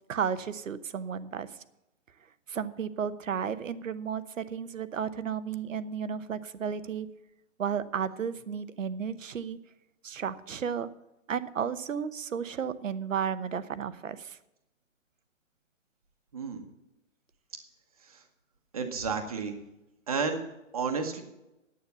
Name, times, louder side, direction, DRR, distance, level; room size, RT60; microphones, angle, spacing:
voice 1, 0.1-1.5 2.5-7.1 7.6-9.6 10.0-10.9 11.3-14.4, right 7 dB, 75° right, 14 dB, 0.9 m, -33 dB
voice 2, 16.3-16.6 18.1-18.2 18.7-19.6 20.1-20.4 20.7-21.2, right 5 dB, 30° right, 6 dB, 1.2 m, -31 dB
9.5 x 8.5 x 6.9 m, 0.93 s
hypercardioid pair, 175°, 39 cm